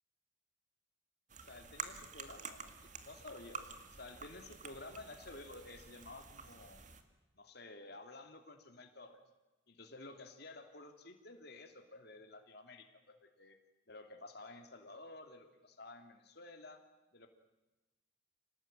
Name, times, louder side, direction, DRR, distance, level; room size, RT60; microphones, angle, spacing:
sound 1, 1.3-7.0, right 5 dB, 40° right, 2.0 m, -49 dB
voice 1, 1.4-6.8 7.3-9.2 9.7-13.6 13.9-16.8 17.1-17.3, left 2 dB, 55° left, 5 dB, 2.9 m, -52 dB
27.5 x 18.5 x 9.0 m, 1.1 s
head